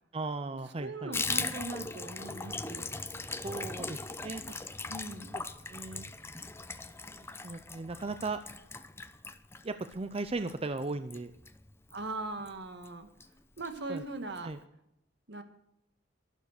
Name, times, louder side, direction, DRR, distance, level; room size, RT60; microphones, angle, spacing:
voice 1, 0.1-1.1 3.3-4.6 5.3-5.4 5.7-6.1 7.1-8.4 9.6-11.3 13.9-14.0 14.4-14.6, right 3 dB, 30° right, 10 dB, 0.6 m, -37 dB
voice 2, 0.8-2.9 4.9-5.4 11.9-13.1 13.6-14.5 15.3-15.4, right 2 dB, 65° right, 8 dB, 1.8 m, -40 dB
Water tap faucet / Bathtub (filling or washing), 1.1-12.1 12.4-12.5 12.8-12.9 13.2-13.7 14.0-14.1 14.3-14.4, left 3 dB, 15° left, 0.8 m, -39 dB
12.5 x 12.0 x 6.6 m, 0.82 s
head